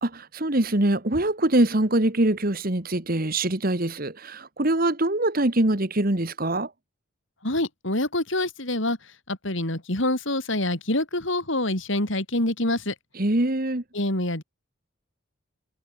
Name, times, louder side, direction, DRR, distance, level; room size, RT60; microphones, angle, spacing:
voice 1, 0.0-6.7 13.2-13.8, right 1 dB, 40° right, 1.7 m, -23 dB
voice 2, 7.4-9.0 9.3-12.9 13.9-14.4, left 1 dB, 60° left, 4.3 m, -26 dB
head